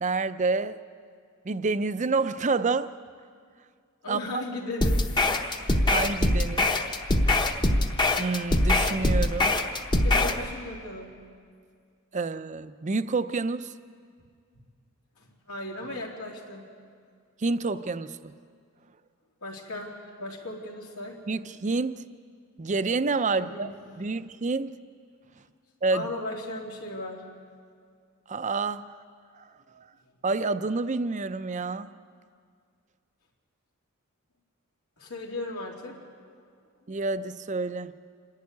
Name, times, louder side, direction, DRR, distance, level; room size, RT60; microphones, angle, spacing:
voice 1, 0.0-0.8 1.4-2.9 4.1-4.4 5.9-6.7 8.2-9.6 12.1-13.7 17.4-18.3 21.3-22.0 22.6-23.7 24.0-24.7 25.8-26.1 28.3-28.9 29.3-29.5 29.7-29.9 30.2-31.9 36.9-37.9, right 3 dB, 35° right, 12 dB, 0.5 m, -28 dB
voice 2, 4.0-5.1 10.0-11.1 15.2-16.6 19.4-21.2 23.4-23.7 25.9-27.2 35.0-36.0, left 2 dB, 85° left, -2 dB, 3.2 m, -36 dB
sound 1, 4.8-10.4, left 1 dB, 20° left, 0.9 m, -23 dB
27.0 x 11.5 x 9.5 m, 2.2 s
head